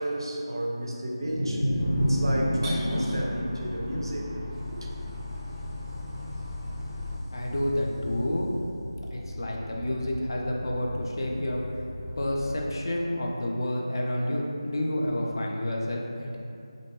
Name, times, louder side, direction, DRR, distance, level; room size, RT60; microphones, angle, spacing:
voice 1, 0.0-4.9, right 1 dB, 60° right, -1 dB, 0.4 m, -33 dB
sound 1, 1.2-4.5, equal, 90° left, 1.0 m, -28 dB
sound 2, 1.8-7.2, left 2 dB, 10° right, 0.6 m, -37 dB
sound 3, 4.5-12.6, left 1 dB, 65° left, 0.7 m, -40 dB
voice 2, 7.3-8.5 9.1-11.8 12.2-16.4, left 1 dB, 50° left, -1 dB, 0.4 m, -29 dB
2.5 x 2.1 x 3.1 m, 2.6 s
figure-of-eight pair, 170°, 3 cm